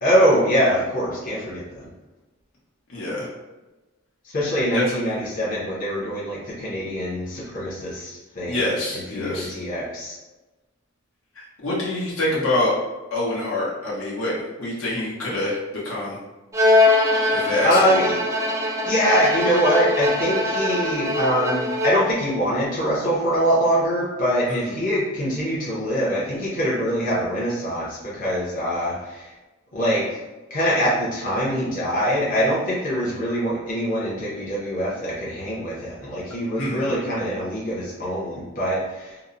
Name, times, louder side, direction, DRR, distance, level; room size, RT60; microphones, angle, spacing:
voice 1, 0.0-1.9 4.2-10.1 17.6-18.2 18.9-29.3 29.7-30.2 30.5-39.2, equal, 40° left, -7 dB, 0.7 m, -23 dB
voice 2, 2.9-3.3 4.7-5.2 8.5-9.5 11.6-12.7 13.1-16.2 17.3-18.0 24.4-24.8 36.6-36.9, left 1 dB, 80° left, -6 dB, 0.9 m, -26 dB
Bowed string instrument, 16.5-22.2, left 2 dB, 15° right, 0.4 m, -22 dB
2.9 x 2.0 x 2.5 m, 1.1 s
head